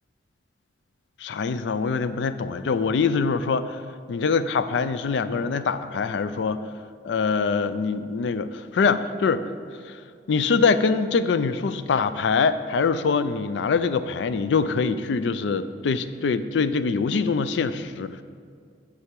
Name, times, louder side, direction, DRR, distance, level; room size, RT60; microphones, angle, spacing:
voice 1, 1.2-3.8 4.1-6.6 7.0-9.5 9.9-10.0 10.3-18.2, left 5 dB, 85° left, 13 dB, 0.4 m, -24 dB
7.7 x 6.5 x 4.6 m, 2.2 s
head